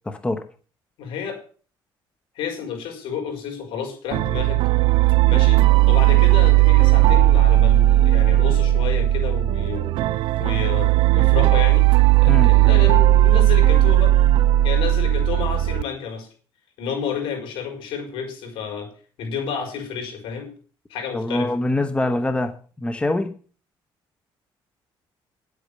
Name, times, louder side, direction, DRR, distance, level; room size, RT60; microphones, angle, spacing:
voice 1, 0.1-0.4 12.3-12.5 21.1-23.3, left 2 dB, 10° left, 1.0 m, -24 dB
voice 2, 1.0-1.4 2.3-4.7 5.3-5.6 5.9-9.9 10.4-11.9 12.2-14.1 14.6-16.3 16.8-18.9 19.2-20.5 20.9-21.5, left 6 dB, 80° left, 4.8 m, -30 dB
sound 1, 4.1-15.8, right 15 dB, 70° right, 0.5 m, -16 dB
10.0 x 8.3 x 6.7 m
cardioid pair, 120°, 9 cm